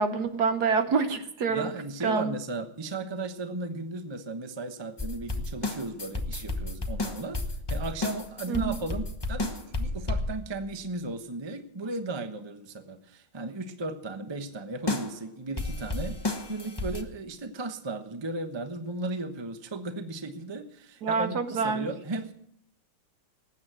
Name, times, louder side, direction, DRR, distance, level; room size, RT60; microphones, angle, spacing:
voice 1, 0.0-1.7 2.0-2.3 8.5-8.8 21.0-21.9, right 5 dB, 60° right, 9 dB, 1.4 m, -27 dB
voice 2, 1.5-7.4 7.7-16.2 16.5-22.3, right 2 dB, 20° right, 7 dB, 0.7 m, -35 dB
sound 1, 5.0-10.6 14.9-15.2 15.6-17.0, left 2 dB, 20° left, 0.7 m, -31 dB
19.5 x 8.5 x 6.2 m, 0.68 s
omnidirectional pair, 2.2 m